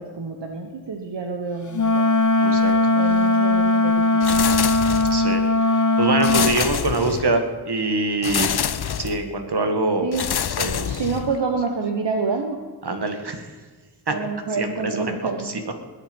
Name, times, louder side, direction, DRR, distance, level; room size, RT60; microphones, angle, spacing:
voice 1, 0.0-2.1 2.9-4.5 10.0-10.2 11.0-12.6 14.1-15.5, right 4 dB, 85° right, 3 dB, 1.4 m, -28 dB
Wind instrument woodwind instrument, 1.7-6.6, left 2 dB, 45° left, 1.0 m, -19 dB
voice 2, 2.4-2.7 5.1-8.5 9.0-10.1 10.6-11.0 12.8-13.4 14.1-14.2 14.6-15.2 15.4-15.8, right 2 dB, 65° right, 6 dB, 2.1 m, -24 dB
sound 1, 4.2-5.3 6.2-7.4 8.2-9.3 10.1-11.4, left 8 dB, 65° left, 0.7 m, -26 dB
21.0 x 8.6 x 5.4 m, 1.4 s
wide cardioid pair, 60°, 42 cm